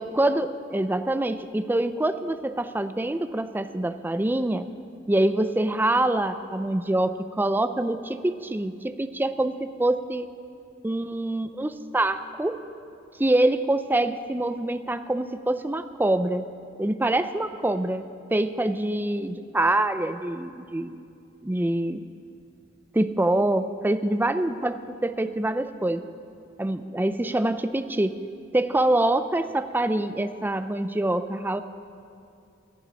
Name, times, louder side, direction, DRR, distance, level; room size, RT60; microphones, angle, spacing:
voice 1, 0.0-4.7 5.1-10.3 10.8-12.6 13.2-16.4 16.8-18.1 18.3-21.0 21.4-22.0 22.9-26.0 26.6-28.1 28.5-31.6, right 1 dB, 10° right, 10 dB, 0.4 m, -25 dB
14.5 x 7.1 x 9.6 m, 2.5 s
head